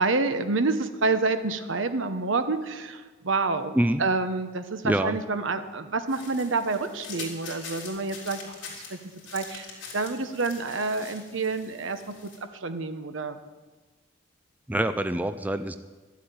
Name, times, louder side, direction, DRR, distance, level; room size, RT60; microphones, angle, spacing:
voice 1, 0.0-8.6 8.9-9.0 9.3-9.7 9.9-13.4, right 3 dB, 75° right, 9 dB, 1.0 m, -28 dB
voice 2, 4.8-5.2 14.7-15.8, right 1 dB, 10° right, 10 dB, 0.4 m, -25 dB
sound 1, 6.1-12.4, left 4 dB, 65° left, 3.7 m, -43 dB
12.5 x 8.4 x 9.2 m, 1.3 s
head